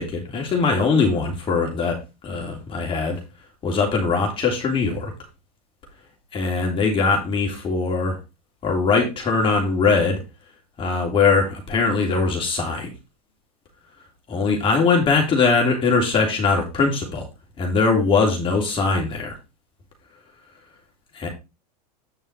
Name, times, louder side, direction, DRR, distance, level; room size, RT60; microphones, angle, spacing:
voice 1, 0.0-2.0 2.2-3.2 3.6-5.1 6.3-8.2 8.6-10.2 10.8-12.9 14.3-17.3 17.6-19.3 21.1-21.3, left 4 dB, 25° left, 1 dB, 3.1 m, -21 dB
9.3 x 5.5 x 4.4 m, 0.26 s
supercardioid pair, 125°, 19 cm